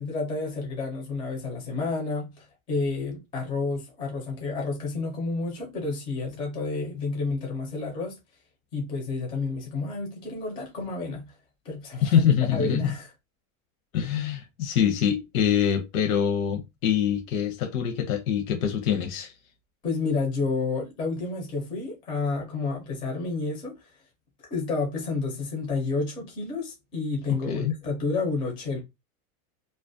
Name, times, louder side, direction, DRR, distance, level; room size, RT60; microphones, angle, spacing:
voice 1, 0.0-8.2 8.7-11.3 11.6-12.2 12.5-13.1 19.8-23.8 24.5-28.8, left 3 dB, 15° left, 0.4 m, -30 dB
voice 2, 12.0-12.9 13.9-19.3 27.3-27.8, left 8 dB, 75° left, 0.7 m, -24 dB
2.4 x 2.1 x 2.5 m
supercardioid pair, 160°, 42 cm